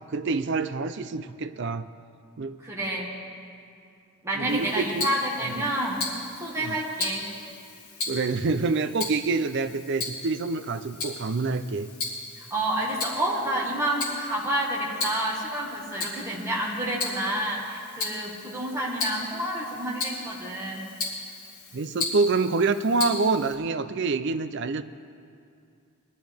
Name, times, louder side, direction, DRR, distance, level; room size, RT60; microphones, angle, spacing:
voice 1, 0.1-1.9 2.4-2.6 4.4-5.1 5.5-5.6 6.5-6.8 8.1-11.9 21.7-24.8, right 3 dB, 50° right, 12 dB, 0.4 m, -26 dB
voice 2, 2.6-3.1 4.2-7.3 12.4-20.8, right 1 dB, 10° right, -4 dB, 1.7 m, -29 dB
Tick-tock, 4.5-23.5, left 3 dB, 75° left, 2.4 m, -36 dB
20.5 x 12.0 x 3.5 m, 2.5 s
head